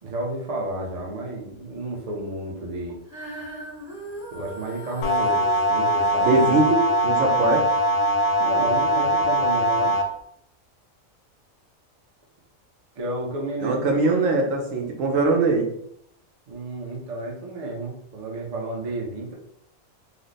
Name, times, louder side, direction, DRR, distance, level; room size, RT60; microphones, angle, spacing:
voice 1, 0.0-3.0 4.3-6.4 8.4-10.0 13.0-14.2 16.5-19.3, right 2 dB, 40° right, -1 dB, 0.6 m, -31 dB
Female singing, 3.1-9.4 10.1-10.2, equal, ahead, 0.9 m, -39 dB
sound 1, 5.0-10.0, equal, 65° left, 0.7 m, -21 dB
voice 2, 6.2-7.7 13.6-15.7, right 3 dB, 70° right, 2 dB, 1.0 m, -21 dB
3.2 x 2.0 x 3.9 m, 0.71 s
omnidirectional pair, 1.4 m